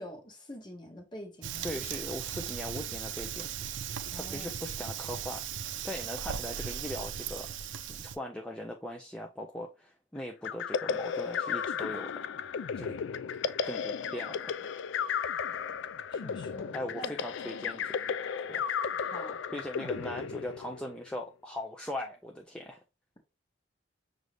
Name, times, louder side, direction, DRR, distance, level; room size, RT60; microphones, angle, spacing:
voice 1, 0.0-1.7 4.1-4.5 16.1-17.1 19.1-19.4, equal, 25° left, 1.0 m, -45 dB
Fire, 1.4-8.2, right 8 dB, 80° right, 0.4 m, -37 dB
voice 2, 1.6-3.5 4.1-5.4 5.8-7.5 7.9-12.2 12.7-13.0 13.6-14.5 16.7-18.7 19.5-22.8, left 1 dB, 5° left, 0.4 m, -40 dB
sound 1, 10.4-21.0, left 7 dB, 80° left, 0.3 m, -34 dB
6.3 x 2.6 x 3.2 m
head